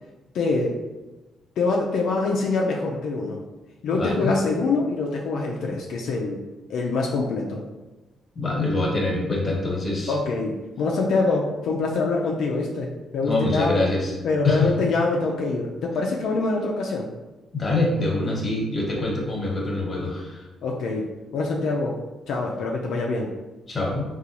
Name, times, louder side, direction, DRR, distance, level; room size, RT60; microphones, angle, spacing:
voice 1, 0.3-0.8 1.6-3.4 3.8-6.4 6.7-7.6 10.1-13.9 14.2-17.1 20.6-21.1 21.3-22.0 22.3-23.3, left 3 dB, 75° left, -1 dB, 0.4 m, -25 dB
voice 2, 3.9-4.3 8.3-10.1 13.2-14.2 14.4-14.7 17.5-20.4 23.7-24.0, left 2 dB, 30° left, -2 dB, 1.1 m, -24 dB
3.8 x 2.3 x 2.8 m, 1.1 s
cardioid pair, 90°, 0 cm